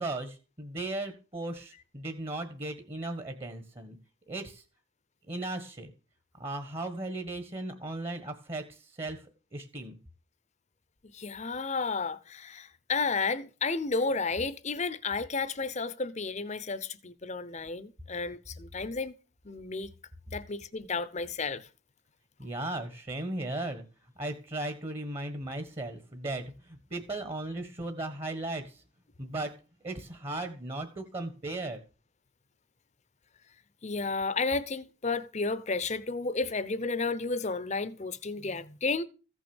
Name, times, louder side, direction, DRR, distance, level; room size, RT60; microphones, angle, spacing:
voice 1, 0.0-4.0 4.3-4.6 5.3-5.9 6.3-10.0 22.4-28.8 29.2-29.5 29.8-31.8, right 2 dB, 30° right, 1.4 m, -37 dB
voice 2, 11.1-19.1 19.4-19.9 20.3-21.7 33.8-39.0, left 4 dB, 35° left, 0.8 m, -32 dB
15.0 x 6.2 x 7.1 m
head